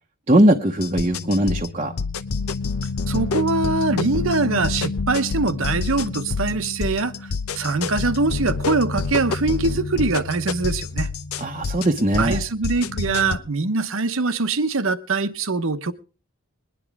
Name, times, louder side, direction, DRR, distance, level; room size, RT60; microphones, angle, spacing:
voice 1, 0.3-1.9 11.4-12.4, right 1 dB, 30° right, 0.9 m, -19 dB
sound 1, 0.8-13.4, left 4 dB, 85° left, 0.7 m, -27 dB
voice 2, 3.1-7.1 7.6-11.1 12.2-15.9, right 3 dB, 65° right, 0.9 m, -23 dB
21.5 x 10.0 x 3.5 m
head